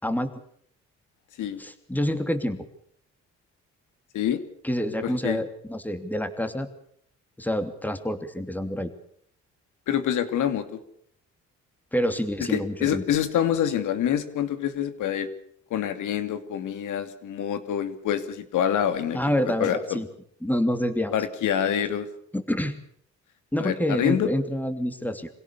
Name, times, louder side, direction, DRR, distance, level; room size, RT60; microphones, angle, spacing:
voice 1, 1.6-2.7 4.6-6.7 7.4-8.9 11.9-13.0 19.1-20.1 20.4-21.1 22.3-22.8 23.5-25.3, equal, 5° left, 8 dB, 3.0 m, -27 dB
voice 2, 5.0-5.4 9.9-10.8 12.5-15.3 15.7-20.0 21.1-22.1 23.6-24.3, left 9 dB, 80° left, 10 dB, 2.6 m, -26 dB
26.0 x 17.0 x 6.9 m, 0.65 s
cardioid pair, 90°, 30 cm